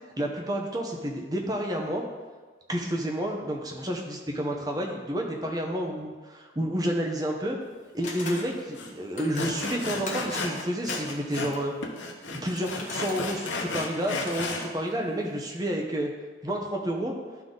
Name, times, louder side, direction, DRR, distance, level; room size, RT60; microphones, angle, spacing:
voice 1, 0.2-2.0 2.7-7.6 7.9-11.7 12.3-16.1 16.4-17.1, equal, 20° right, 0 dB, 0.8 m, -30 dB
sound 1, 8.0-8.6 9.2-9.5 10.1-10.4 10.9-11.3 12.6-14.4, left 3 dB, 40° left, 1.0 m, -41 dB
Sawing, 8.3-8.4 8.7-8.9 9.3-11.6 11.8-14.7, left 3 dB, 85° left, 0.9 m, -33 dB
11.0 x 3.8 x 3.9 m, 1.4 s
head